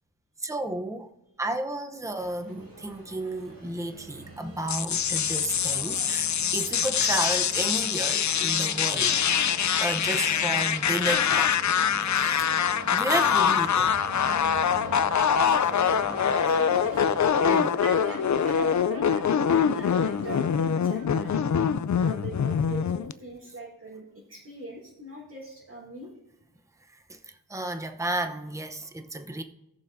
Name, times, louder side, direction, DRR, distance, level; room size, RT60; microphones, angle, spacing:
voice 1, 0.4-1.1 1.4-9.1 9.8-11.6 12.1-12.6 12.9-13.9 17.4-17.8 22.1-22.2 27.1-29.4, right 1 dB, 10° right, 0.8 m, -32 dB
sound 1, 2.1-21.3, right 2 dB, 60° right, 2.4 m, -49 dB
sound 2, 2.6-17.3, right 1 dB, 75° right, 2.0 m, -42 dB
sound 3, 4.7-23.1, left 7 dB, 50° left, 0.4 m, -24 dB
voice 2, 15.3-17.3 17.7-21.4 22.0-26.1, right 1 dB, 40° right, 3.7 m, -42 dB
19.0 x 6.9 x 2.7 m
wide cardioid pair, 60°, 40 cm